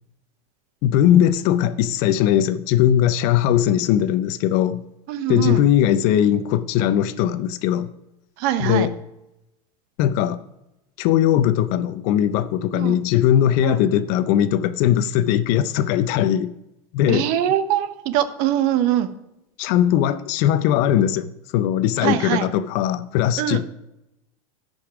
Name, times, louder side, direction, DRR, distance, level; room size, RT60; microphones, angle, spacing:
voice 1, 0.8-4.9 5.3-7.9 8.6-8.9 10.0-10.4 11.0-16.5 16.9-17.3 19.6-23.6, left 11 dB, 50° left, 0.6 m, -19 dB
voice 2, 5.1-5.6 8.4-8.9 12.7-13.0 13.6-13.8 17.1-19.1 22.0-22.5 23.4-23.6, right 11 dB, 50° right, 0.9 m, -22 dB
11.5 x 5.3 x 5.9 m
supercardioid pair, 145°, 19 cm